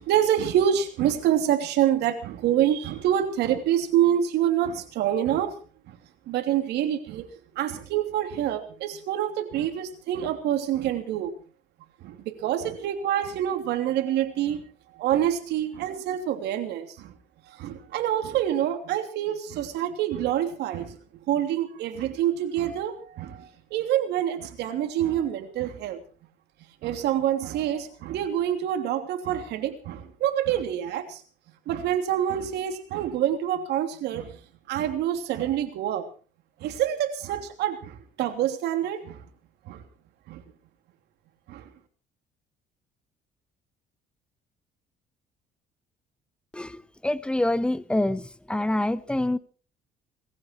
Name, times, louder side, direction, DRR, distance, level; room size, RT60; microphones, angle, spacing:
voice 1, 0.0-5.5 5.9-6.0 6.3-7.3 7.5-11.3 12.0-14.6 14.9-17.1 17.5-21.0 21.3-26.0 26.8-31.2 31.7-34.4 34.7-36.0 36.6-39.2 39.6-39.8 40.3-40.4 41.5-41.7, right 10 dB, 80° right, 6 dB, 3.1 m, -26 dB
voice 2, 46.5-49.4, left 1 dB, 5° left, 15 dB, 1.0 m, -26 dB
20.0 x 15.5 x 4.6 m, 0.39 s
cardioid pair, 110°, 17 cm